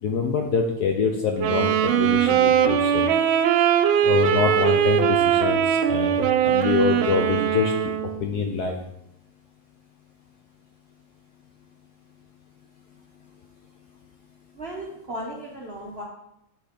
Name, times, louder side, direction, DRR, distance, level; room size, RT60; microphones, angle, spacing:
voice 1, 0.0-3.1 4.0-7.9 8.2-8.8, left 5 dB, 75° left, 3 dB, 0.9 m, -25 dB
Wind instrument woodwind instrument, 1.4-8.2, right 9 dB, 85° right, 1.4 m, -21 dB
voice 2, 14.6-16.0, right 1 dB, 50° right, -2 dB, 0.7 m, -35 dB
5.8 x 4.1 x 4.9 m, 0.82 s
omnidirectional pair, 2.2 m